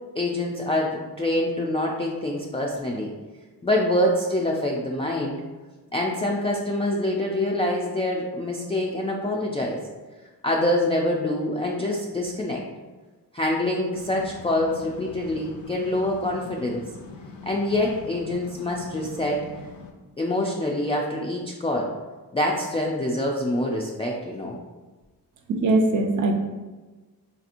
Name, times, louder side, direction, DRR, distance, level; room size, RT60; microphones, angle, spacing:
voice 1, 0.2-3.1 3.6-5.4 5.9-9.8 10.4-12.6 13.3-16.8 17.5-19.4 20.2-21.9 22.3-24.6, left 1 dB, 15° left, -2 dB, 0.3 m, -25 dB
sound 1, 13.9-19.9, left 4 dB, 80° left, 0.6 m, -42 dB
voice 2, 25.5-26.3, right 2 dB, 50° right, 4 dB, 0.5 m, -21 dB
4.0 x 2.8 x 2.5 m, 1.3 s
cardioid pair, 85°, 41 cm